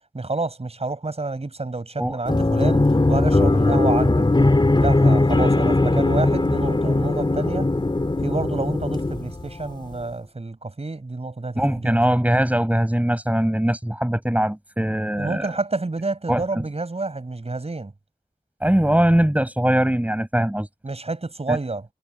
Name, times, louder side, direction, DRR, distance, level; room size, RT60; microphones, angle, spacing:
voice 1, 0.1-4.3 4.8-7.7 8.2-12.0 15.2-17.9 20.8-21.9, right 3 dB, 40° right, 7.4 m, -29 dB
sound 1, 2.2-9.8, left 2 dB, 30° left, 3.4 m, -19 dB
voice 2, 11.5-15.5 16.3-16.6 18.6-20.7 21.5-21.6, right 1 dB, 10° right, 6.5 m, -21 dB
wide cardioid pair, 70°, 16 cm